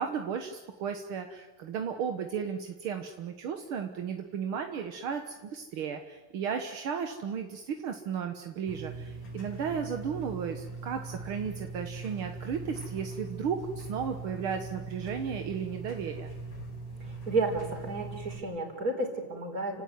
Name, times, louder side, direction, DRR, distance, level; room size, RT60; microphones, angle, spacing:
voice 1, 0.0-16.3, right 7 dB, 55° right, 5 dB, 1.6 m, -34 dB
sound 1, 8.7-18.4, right 3 dB, 55° left, 5.8 m, -41 dB
voice 2, 17.0-19.8, right 3 dB, 25° right, 3 dB, 4.5 m, -32 dB
29.5 x 17.0 x 9.5 m, 1.2 s
omnidirectional pair, 3.8 m